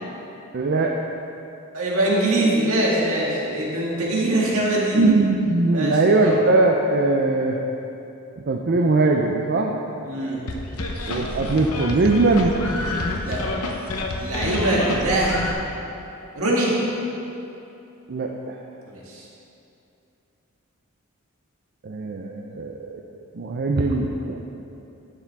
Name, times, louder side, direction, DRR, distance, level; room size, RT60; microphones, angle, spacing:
voice 1, 0.5-0.9 4.9-7.6 8.5-9.8 11.1-12.6 18.1-18.6 21.8-23.0 23.3-24.4, right 2 dB, 50° right, 1 dB, 0.5 m, -20 dB
voice 2, 1.7-5.0 5.7-6.4 10.0-10.4 13.3-13.4 14.2-15.5 16.3-16.7 18.9-19.3, right 1 dB, 65° right, -4 dB, 1.9 m, -23 dB
sound 1, 10.5-15.5, left 2 dB, 75° left, 0.9 m, -28 dB
11.5 x 7.2 x 3.5 m, 2.8 s
head